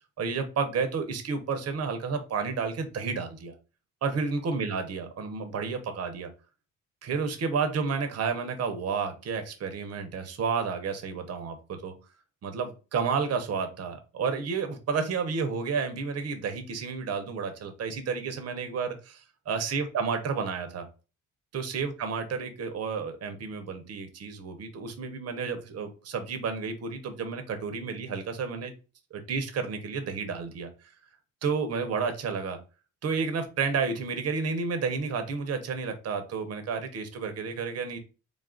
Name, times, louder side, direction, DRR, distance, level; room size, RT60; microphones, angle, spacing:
voice 1, 0.2-3.5 4.0-6.3 7.0-11.9 12.4-20.9 21.5-28.7 29.1-30.7 31.4-32.6 33.0-38.0, right 5 dB, 55° right, 7 dB, 0.9 m, -31 dB
3.7 x 2.5 x 3.7 m, 0.32 s
cardioid pair, 90°, 30 cm